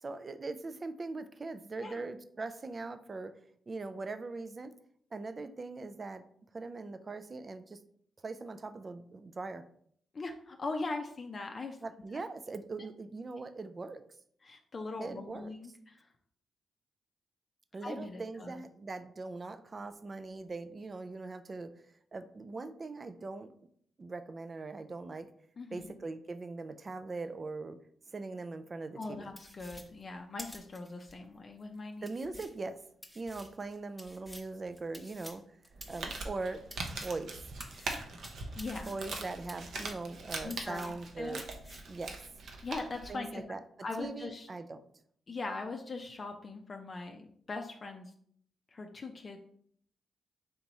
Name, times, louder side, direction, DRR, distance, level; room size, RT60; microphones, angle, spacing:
voice 1, 0.0-3.3 3.7-4.7 5.1-6.2 6.5-7.8 8.2-9.6 11.8-14.0 15.0-15.5 17.7-21.9 22.1-23.5 24.0-25.3 25.7-27.8 28.1-29.3 32.0-32.8 33.2-35.4 35.9-37.4 38.9-41.4 41.9-42.2 43.1-43.6 44.0-44.8, right 3 dB, 40° right, 11 dB, 0.3 m, -41 dB
voice 2, 10.1-11.8 14.4-16.1 17.8-18.5 25.6-25.9 29.0-32.0 38.5-39.0 40.4-41.4 42.6-43.4 43.8-44.5 45.3-48.1 48.7-49.4, left 3 dB, 45° left, 4 dB, 0.4 m, -40 dB
sound 1, 29.4-31.1 31.6-31.7 32.0-37.2 37.6-40.2 40.5-41.1 41.4-41.9, equal, ahead, 0.9 m, -51 dB
Crumpling crinkling, 35.7-43.1, right 3 dB, 70° right, 0.7 m, -42 dB
3.5 x 2.9 x 4.0 m, 0.64 s
supercardioid pair, 55°, 0 cm